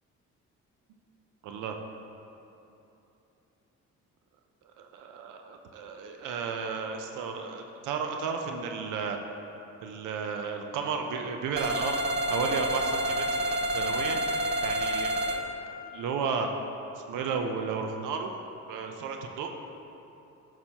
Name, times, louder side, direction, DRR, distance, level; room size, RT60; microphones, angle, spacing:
voice 1, 1.4-1.8 4.8-9.2 9.8-12.0 12.3-14.2 14.6-15.6 15.9-16.5 17.0-18.4 18.7-19.5, right 5 dB, 85° right, 4 dB, 0.6 m, -33 dB
sound 1, 11.6-15.4, right 1 dB, 35° right, 0.6 m, -29 dB
8.7 x 5.9 x 2.8 m, 2.9 s
cardioid pair, 90°, 30 cm